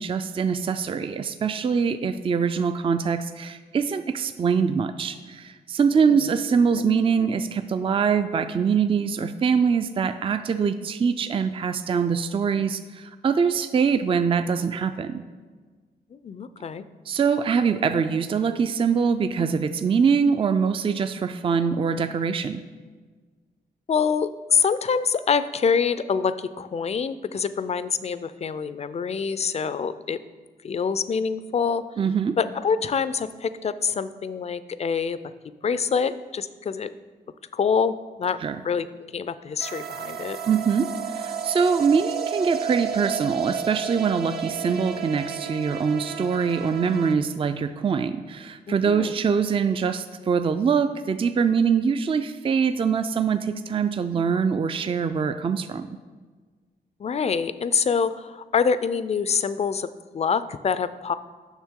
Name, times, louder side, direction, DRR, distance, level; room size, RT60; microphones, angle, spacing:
voice 1, 0.0-15.2 17.1-22.6 32.0-32.4 38.4-38.6 40.5-55.9, right 6 dB, 30° right, 10 dB, 0.3 m, -23 dB
voice 2, 16.1-16.9 23.9-30.2 30.6-31.8 32.4-35.2 35.6-36.9 37.5-38.4 38.6-38.9 39.1-40.4 48.7-49.1 57.0-59.9 60.1-61.1, left 6 dB, 40° left, 14 dB, 0.4 m, -25 dB
sound 1, 39.6-47.1, right 7 dB, 65° right, 0.7 m, -32 dB
7.2 x 5.9 x 3.7 m, 1.4 s
cardioid pair, 60°, 18 cm